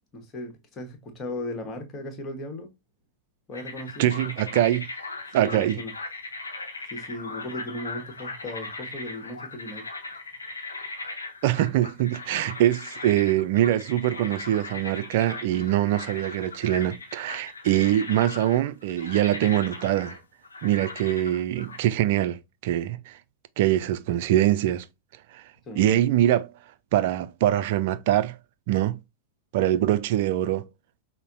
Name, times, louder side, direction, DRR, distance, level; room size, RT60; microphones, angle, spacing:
voice 1, 0.1-2.7 3.5-4.1 5.4-5.9 6.9-9.8 17.7-17.9 25.7-26.0, left 1 dB, 25° left, 1.2 m, -37 dB
sound 1, 3.5-21.8, left 3 dB, 80° left, 0.8 m, -39 dB
voice 2, 4.0-4.9 5.3-5.8 11.4-20.2 20.6-23.2 23.6-24.8 25.3-25.4 25.8-26.5 26.9-28.4 28.7-29.0 29.5-30.7, right 13 dB, 50° right, 0.4 m, -23 dB
5.4 x 2.1 x 2.5 m
figure-of-eight pair, 95°, 0 cm